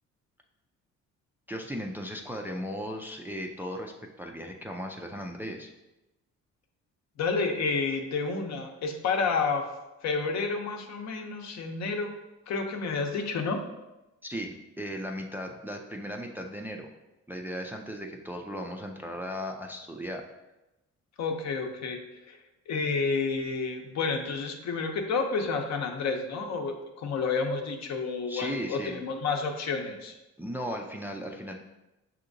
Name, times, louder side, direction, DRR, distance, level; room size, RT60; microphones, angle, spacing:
voice 1, 1.5-5.7 14.2-16.9 17.3-20.2 28.3-29.0 30.4-31.5, equal, 5° right, 2 dB, 0.3 m, -36 dB
voice 2, 7.2-9.7 10.0-12.1 12.5-13.6 21.2-22.0 22.3-22.4 22.7-30.1, left 4 dB, 60° left, 4 dB, 0.7 m, -30 dB
6.0 x 2.8 x 2.6 m, 0.99 s
cardioid pair, 90°, 30 cm